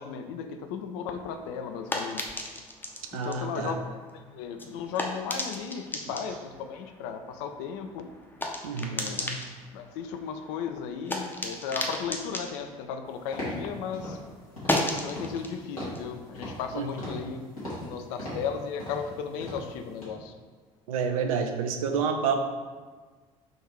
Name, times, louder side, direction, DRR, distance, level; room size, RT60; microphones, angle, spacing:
voice 1, 0.0-2.2 3.1-8.1 8.9-9.3 9.7-14.2 14.9-17.4 17.8-20.3, left 6 dB, 60° left, 7 dB, 0.4 m, -35 dB
sound 1, 1.1-13.8 14.1-17.4, left 1 dB, 10° left, 0.6 m, -36 dB
voice 2, 3.1-3.7 8.6-9.4 16.7-16.9 20.9-22.3, right 6 dB, 70° right, 5 dB, 0.5 m, -29 dB
sound 2, 13.3-13.6 13.9-14.2 14.6-14.8 15.1-15.5 15.8-16.0 16.3-16.7 17.0-17.3 17.6-17.9 18.2-18.5 18.8-19.1 19.4-19.7 20.0-20.1, equal, 85° left, 1.3 m, -37 dB
3.9 x 2.6 x 4.5 m, 1.4 s
figure-of-eight pair, 60°, 18 cm